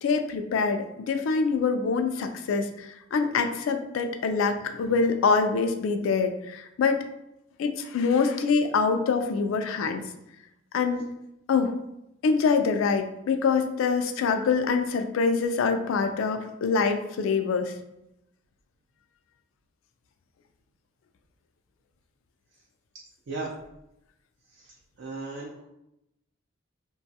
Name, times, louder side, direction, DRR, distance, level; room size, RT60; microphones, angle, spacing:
voice 1, 0.0-7.0 7.6-10.0 10.7-11.1 11.5-11.8 12.2-17.7, left 5 dB, 85° left, 7 dB, 0.3 m, -25 dB
voice 2, 24.5-25.6, right 3 dB, 60° right, -3 dB, 0.4 m, -37 dB
2.9 x 2.3 x 2.7 m, 0.85 s
head